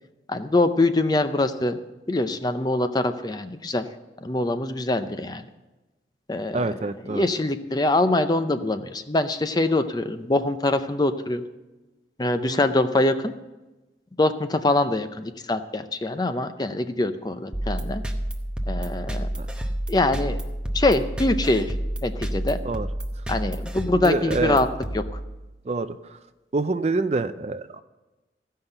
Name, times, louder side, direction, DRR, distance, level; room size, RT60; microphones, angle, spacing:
voice 1, 0.3-1.8 2.1-3.9 4.2-5.4 6.3-6.8 7.0-11.4 12.2-13.3 14.2-18.0 18.7-19.3 19.9-20.4 20.7-21.7 22.0-22.6 23.3-24.7 24.9-25.0, left 2 dB, 20° left, 10 dB, 0.5 m, -24 dB
voice 2, 6.5-7.2 12.5-12.6 19.3-19.5 22.7-22.9 23.9-24.6 25.7-26.0 26.5-27.8, right 3 dB, 35° right, 11 dB, 0.4 m, -26 dB
sound 1, 17.5-25.7, right 1 dB, 5° right, 0.8 m, -30 dB
15.0 x 5.6 x 7.9 m, 1.1 s
head